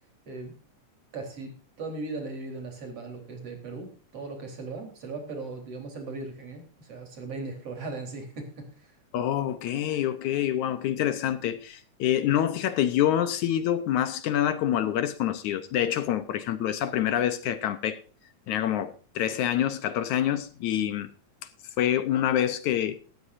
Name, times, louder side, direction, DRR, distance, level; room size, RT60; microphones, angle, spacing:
voice 1, 1.1-8.9, right 3 dB, 50° right, 4.9 m, -38 dB
voice 2, 9.1-18.0 18.5-21.1 21.8-23.0, left 11 dB, 70° left, 2.2 m, -26 dB
18.5 x 13.0 x 2.6 m
omnidirectional pair, 3.7 m